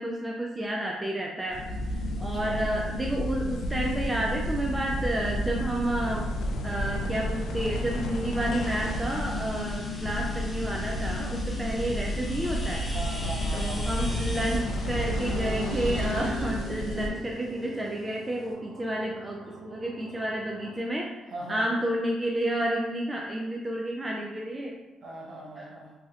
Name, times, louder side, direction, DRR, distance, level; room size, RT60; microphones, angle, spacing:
voice 1, 0.0-12.9 13.5-24.8 25.6-25.7, right 1 dB, 15° right, -1 dB, 0.3 m, -31 dB
sound 1, 1.5-17.1, left 1 dB, 70° left, 0.3 m, -31 dB
voice 2, 2.2-2.6 12.9-13.9 21.3-21.8 25.0-25.9, right 1 dB, 50° right, -3 dB, 0.9 m, -40 dB
sound 2, 8.5-18.1, left 1 dB, 25° left, 0.7 m, -44 dB
sound 3, 14.8-20.7, right 4 dB, 85° right, 0.5 m, -42 dB
3.0 x 2.8 x 2.4 m, 1.2 s
cardioid pair, 90°, 0 cm